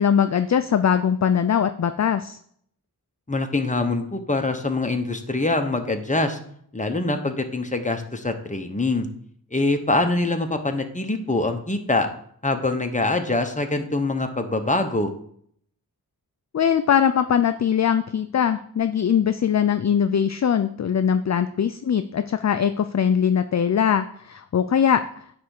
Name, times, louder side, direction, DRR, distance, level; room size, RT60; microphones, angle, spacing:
voice 1, 0.0-2.4 16.5-25.3, left 8 dB, 45° left, 10 dB, 0.4 m, -21 dB
voice 2, 3.3-6.4 6.7-9.1 9.5-12.1 12.4-15.1, left 2 dB, 20° left, 5 dB, 1.0 m, -24 dB
9.5 x 3.5 x 6.5 m, 0.64 s
wide cardioid pair, 65°, 39 cm